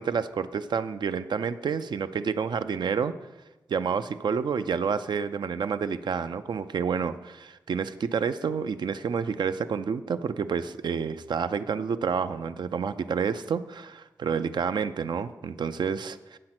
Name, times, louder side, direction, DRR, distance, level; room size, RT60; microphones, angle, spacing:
voice 1, 0.0-3.1 3.7-16.4, right 6 dB, 85° right, 11 dB, 0.4 m, -29 dB
7.9 x 7.5 x 5.9 m, 1.1 s
wide cardioid pair, 100°, 8 cm